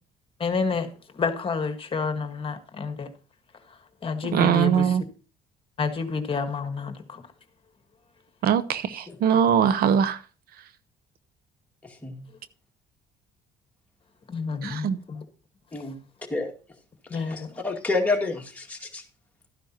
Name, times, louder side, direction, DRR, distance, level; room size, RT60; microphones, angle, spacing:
voice 1, 0.4-0.9 1.1-3.1 4.0-5.0 5.8-7.2 14.3-15.2 17.1-17.5, left 5 dB, 30° left, 1.5 m, -29 dB
voice 2, 4.3-5.0 8.4-10.2 14.6-15.0, right 8 dB, 65° right, 0.7 m, -21 dB
voice 3, 17.1-19.0, left 3 dB, 10° left, 2.0 m, -29 dB
13.0 x 10.0 x 2.9 m
cardioid pair, 110°, 17 cm